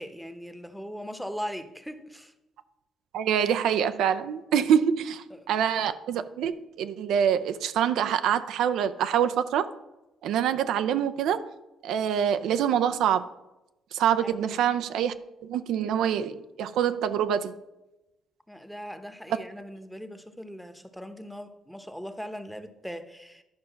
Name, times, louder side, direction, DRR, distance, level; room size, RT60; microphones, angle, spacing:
voice 1, 0.0-2.3 5.3-5.5 14.2-14.6 18.5-23.4, equal, ahead, 9 dB, 0.9 m, -39 dB
voice 2, 3.1-9.7 10.2-11.4 11.8-13.3 13.9-15.1 15.4-17.5, right 9 dB, 85° right, 11 dB, 0.4 m, -25 dB
11.0 x 5.2 x 5.7 m, 0.98 s
cardioid pair, 90°, 0 cm